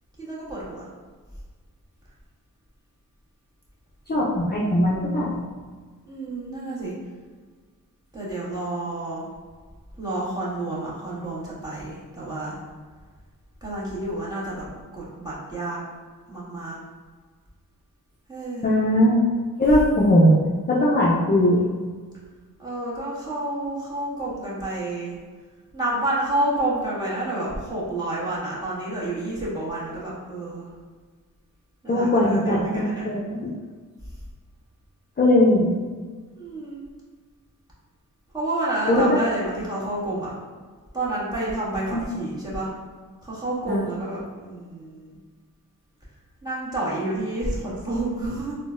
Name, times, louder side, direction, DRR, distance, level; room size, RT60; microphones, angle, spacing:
voice 1, 0.2-0.9 6.1-6.9 8.1-9.2 10.0-12.6 13.6-14.7 14.9-15.8 16.3-16.8 18.3-18.6 22.6-25.1 25.7-30.7 31.8-33.1 36.3-36.8 38.3-40.3 40.9-42.7 43.2-45.2 46.4-48.5, right 1 dB, 10° right, -9 dB, 1.4 m, -29 dB
voice 2, 4.1-5.4 18.6-19.2 19.6-20.4 20.7-21.6 31.9-32.6 33.0-33.5 35.2-35.7 38.9-39.2 41.9-42.0 43.7-43.9, left 1 dB, 25° left, -6 dB, 0.5 m, -19 dB
3.7 x 2.2 x 2.5 m, 1.5 s
cardioid pair, 65°, 37 cm